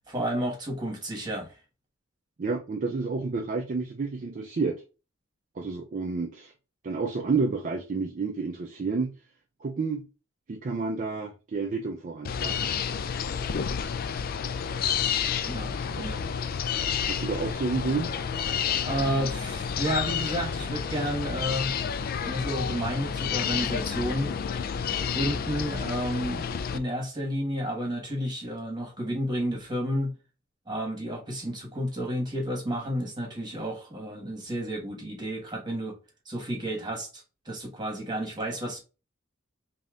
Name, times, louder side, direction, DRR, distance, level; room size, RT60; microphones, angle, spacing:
voice 1, 0.1-1.5 15.5-16.3 18.8-21.7 22.2-24.3 25.1-26.4 26.7-30.1 30.7-36.0 36.2-38.8, equal, 20° right, 1.4 m, -31 dB
voice 2, 2.4-4.8 5.6-6.5 6.8-9.2 9.6-10.1 10.5-12.7 16.0-16.1 17.1-18.1, right 4 dB, 40° right, 0.4 m, -30 dB
sound 1, 12.2-26.8, left 7 dB, 45° left, 0.3 m, -30 dB
5.2 x 2.7 x 2.4 m
head